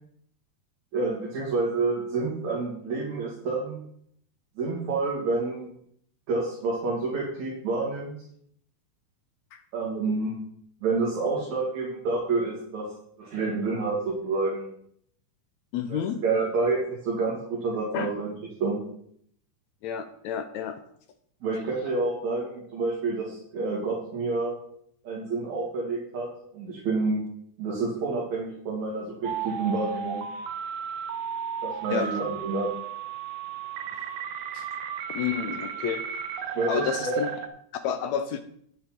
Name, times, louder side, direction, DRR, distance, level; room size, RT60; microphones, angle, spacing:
voice 1, 0.9-3.8 4.6-5.7 6.3-8.1 9.7-10.3 10.8-12.9 13.2-14.7 15.9-18.3 18.6-18.8 21.4-24.5 25.0-26.3 26.5-27.2 27.6-30.2 31.6-32.7 36.5-37.2, right 3 dB, 65° right, -5 dB, 4.0 m, -28 dB
voice 2, 15.7-16.2 17.9-18.1 19.8-20.8 31.9-32.1 34.5-34.7 35.1-36.0 36.7-37.3 37.8-38.4, left 8 dB, 75° left, 8 dB, 1.8 m, -30 dB
sound 1, 29.2-37.5, right 7 dB, 85° right, 2.6 m, -34 dB
10.0 x 8.9 x 4.5 m, 0.67 s
omnidirectional pair, 3.6 m